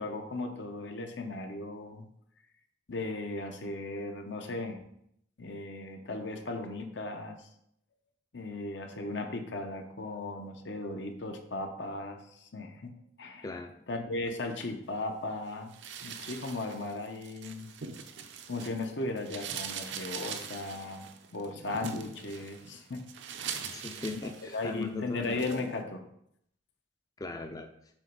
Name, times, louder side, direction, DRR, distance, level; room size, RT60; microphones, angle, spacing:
voice 1, 0.0-2.1 2.9-4.8 5.4-7.5 8.3-12.9 13.2-13.5 13.9-15.7 16.0-17.7 18.5-23.0 23.4-23.7 24.1-24.2 24.5-26.0, left 2 dB, 80° left, 4 dB, 0.9 m, -37 dB
voice 2, 13.4-13.7 23.6-25.6 27.2-27.7, left 3 dB, 20° left, 5 dB, 0.4 m, -38 dB
sound 1, 15.7-18.9 19.2-24.8 25.2-25.6, right 7 dB, 80° right, 0.6 m, -42 dB
7.4 x 3.1 x 5.2 m, 0.72 s
head